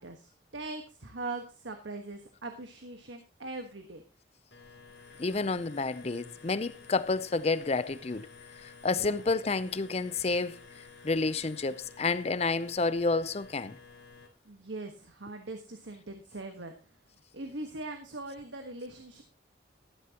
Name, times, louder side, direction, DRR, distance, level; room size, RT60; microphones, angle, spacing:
voice 1, 0.0-4.0 9.0-9.2 14.4-16.7 17.3-19.2, right 2 dB, 90° right, 1.3 m, -41 dB
sound 1, 4.5-14.3, left 5 dB, 60° left, 2.6 m, -52 dB
voice 2, 5.2-8.3 8.6-10.6 11.0-13.8, left 3 dB, 35° left, 0.5 m, -30 dB
13.0 x 11.0 x 2.9 m
head